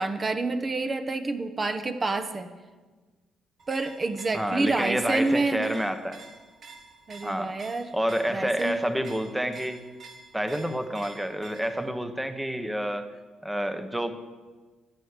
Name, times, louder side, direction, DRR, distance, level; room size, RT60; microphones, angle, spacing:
voice 1, 0.0-2.5 3.7-5.7 7.1-7.9 8.3-8.8, right 3 dB, 30° right, 7 dB, 1.0 m, -28 dB
sound 1, 3.6-11.9, right 3 dB, 55° right, 1.3 m, -49 dB
voice 2, 4.3-6.2 7.2-7.6 7.9-9.8 10.3-13.1 13.4-14.2, equal, 5° right, 8 dB, 1.1 m, -29 dB
10.5 x 9.8 x 6.7 m, 1.3 s
cardioid pair, 90°, 0 cm